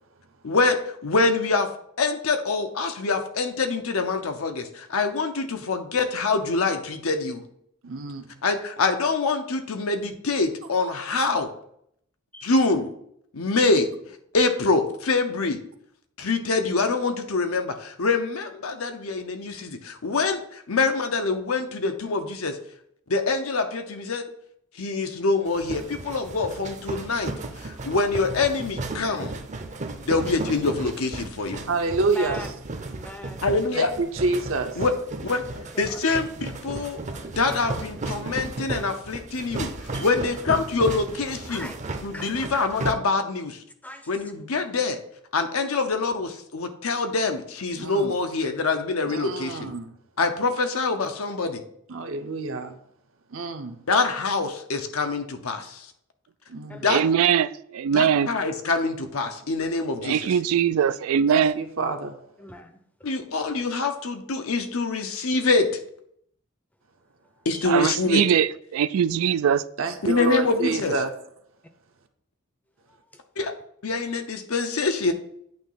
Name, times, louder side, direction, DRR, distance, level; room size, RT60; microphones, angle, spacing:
voice 1, 0.4-1.7 2.0-7.4 8.4-11.5 12.4-12.9 13.3-13.9 14.3-15.6 16.2-22.6 23.1-24.2 24.8-29.4 30.1-31.6 33.4-33.9 34.8-34.9 35.2-35.4 35.8-37.0 37.4-39.7 40.0-41.7 42.0-43.6 44.1-45.0 45.3-49.7 50.2-51.6 53.9-55.9 56.8-57.0 57.9-60.3 63.0-65.7 67.4-68.2 70.0-70.9 73.4-73.5 73.8-75.1, left 3 dB, 85° left, 6 dB, 0.9 m, -25 dB
voice 2, 7.8-8.3 31.7-32.5 33.7-34.8 47.8-48.1 49.1-50.0 51.9-52.7 53.3-53.8 56.5-56.8 61.3-62.2 69.8-71.1, right 3 dB, 70° right, 7 dB, 0.8 m, -27 dB
sound 1, 25.5-42.9, right 2 dB, 35° right, 0.6 m, -35 dB
voice 3, 32.1-32.5 32.9-33.5 35.5-36.0 39.9-40.1 41.5-41.8 42.1-42.5 43.8-44.2 50.6-50.7 56.7-57.1 60.8-60.9 62.4-62.8 67.5-67.7 70.7-70.9 72.9-73.2, left 1 dB, 5° left, 7 dB, 0.5 m, -40 dB
voice 4, 56.9-58.3 60.0-61.5 67.7-69.6, right 8 dB, 85° right, 15 dB, 0.3 m, -21 dB
8.9 x 3.1 x 5.7 m, 0.70 s
head